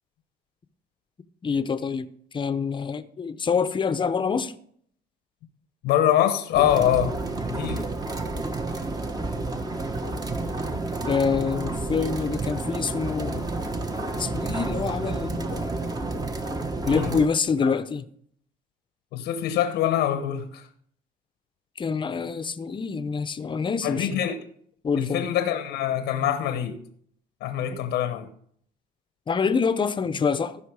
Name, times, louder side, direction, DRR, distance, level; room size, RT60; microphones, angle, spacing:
voice 1, 1.4-2.1 2.3-4.5 11.0-13.5 14.2-15.8 16.9-18.0 21.8-24.2 24.8-25.3 29.3-30.7, left 5 dB, 30° left, 0.7 m, -26 dB
voice 2, 5.8-7.2 7.5-7.8 16.8-17.1 17.6-17.7 19.1-20.7 23.8-24.4 25.0-26.8 27.4-28.3, left 11 dB, 85° left, 1.0 m, -24 dB
sound 1, 6.5-17.3, right 2 dB, 20° right, 1.1 m, -30 dB
15.5 x 5.7 x 4.8 m
cardioid pair, 110°, 17 cm